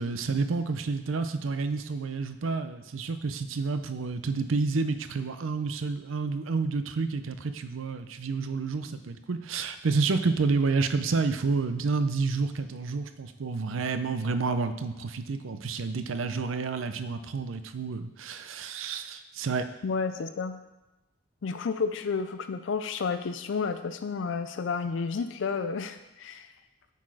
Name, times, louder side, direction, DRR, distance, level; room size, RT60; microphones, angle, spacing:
voice 1, 0.0-19.7, right 4 dB, 90° right, 10 dB, 0.5 m, -29 dB
voice 2, 19.8-20.6 21.4-26.5, left 5 dB, 75° left, 10 dB, 0.4 m, -31 dB
8.5 x 4.1 x 4.8 m, 0.99 s
head